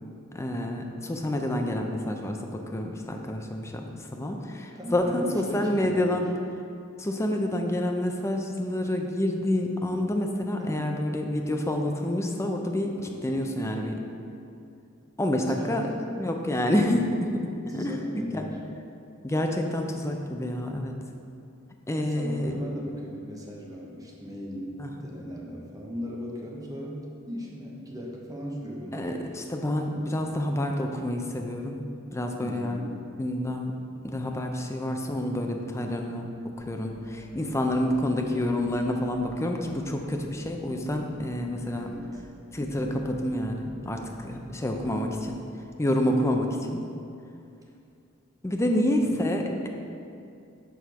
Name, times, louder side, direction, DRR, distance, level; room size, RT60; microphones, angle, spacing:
voice 1, 0.3-6.3 7.0-12.9 13.2-14.0 15.2-15.9 16.2-18.0 18.3-18.4 19.2-21.0 21.9-22.6 24.8-24.9 28.9-31.8 32.1-32.8 33.2-33.8 34.0-36.3 36.6-41.9 42.5-45.4 45.8-46.9 48.4-49.7, left 1 dB, 15° left, 3 dB, 0.5 m, -28 dB
voice 2, 4.7-6.2 10.6-11.0 13.0-13.3 15.4-15.8 17.7-18.6 21.9-29.1 32.4-33.0 41.7-42.2 49.0-49.2, equal, 15° right, -3 dB, 0.9 m, -38 dB
sound 1, 36.6-45.3, right 1 dB, 40° right, 1.4 m, -49 dB
7.0 x 4.4 x 4.6 m, 2.5 s
head